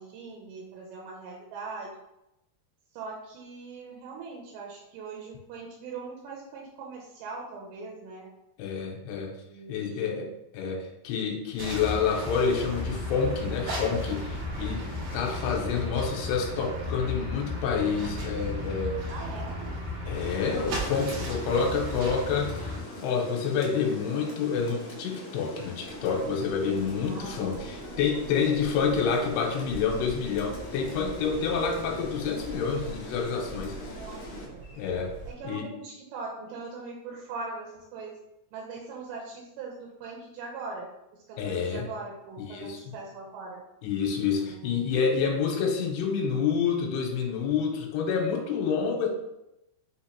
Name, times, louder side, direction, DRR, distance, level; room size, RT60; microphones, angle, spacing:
voice 1, 0.0-1.9 2.9-8.3 9.5-10.3 19.1-19.8 27.1-27.7 33.9-34.2 34.5-34.7 35.3-38.2 38.5-40.9 41.3-43.6 44.3-44.8, right 4 dB, 85° right, -1 dB, 2.8 m, -41 dB
voice 2, 8.6-9.3 9.7-19.0 20.1-33.8 34.7-35.1 35.4-35.7 41.4-41.9 42.4-42.9 43.8-49.1, left 6 dB, 85° left, 1 dB, 2.7 m, -28 dB
sound 1, 11.6-22.8, left 1 dB, 65° right, 2.5 m, -34 dB
Rain, 20.1-34.5, left 1 dB, 60° left, 2.1 m, -42 dB
sound 2, 25.8-35.3, right 3 dB, 50° right, 1.6 m, -45 dB
6.2 x 2.9 x 2.8 m, 0.87 s
omnidirectional pair, 4.9 m